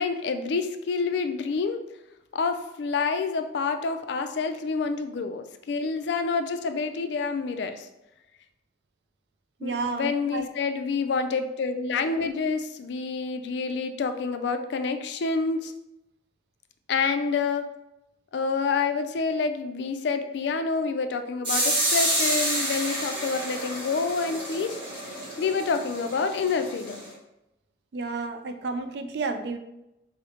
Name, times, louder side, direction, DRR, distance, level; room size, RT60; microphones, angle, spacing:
voice 1, 0.0-1.8 2.3-7.9 9.6-15.7 16.9-17.7 18.3-24.8 25.4-27.1, left 4 dB, 65° left, 8 dB, 0.3 m, -28 dB
voice 2, 9.6-10.5 27.9-29.6, right 3 dB, 60° right, 7 dB, 0.3 m, -31 dB
sound 1, 21.4-27.1, right 1 dB, 30° right, 1.0 m, -29 dB
4.9 x 2.1 x 2.8 m, 0.89 s
head